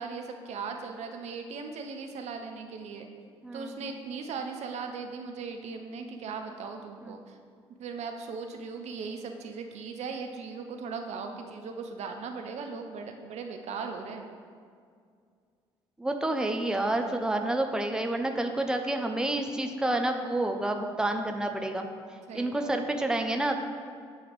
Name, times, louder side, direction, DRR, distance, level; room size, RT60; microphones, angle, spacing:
voice 1, 0.0-3.1 3.5-7.4 7.8-14.3 22.3-22.7, right 5 dB, 55° right, 5 dB, 0.6 m, -38 dB
voice 2, 3.4-3.9 7.1-7.2 16.0-21.9 22.3-23.6, right 1 dB, 5° right, 4 dB, 0.6 m, -29 dB
8.6 x 3.2 x 5.0 m, 2.2 s
figure-of-eight pair, 50°, 14 cm